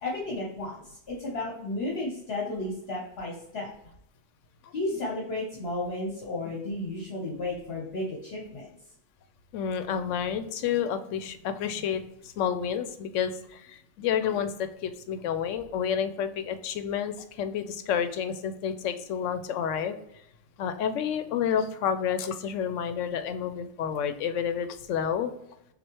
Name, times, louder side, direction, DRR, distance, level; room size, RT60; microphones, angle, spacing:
voice 1, 0.0-3.7 4.7-8.7, left 2 dB, 60° left, -3 dB, 1.1 m, -33 dB
voice 2, 9.5-20.0 20.6-25.3, left 8 dB, 85° left, 9 dB, 0.9 m, -30 dB
6.2 x 2.4 x 3.0 m, 0.78 s
omnidirectional pair, 1.2 m